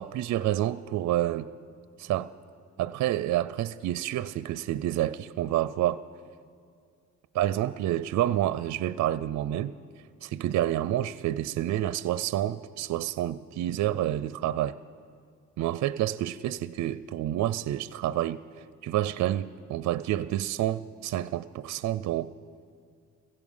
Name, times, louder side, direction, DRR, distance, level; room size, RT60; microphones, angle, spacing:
voice 1, 0.0-1.5 2.0-2.3 2.8-6.0 7.3-9.7 10.2-14.8 15.6-22.3, right 13 dB, 65° right, 0.5 m, -28 dB
16.0 x 16.0 x 5.5 m
cardioid pair, 90°, 30 cm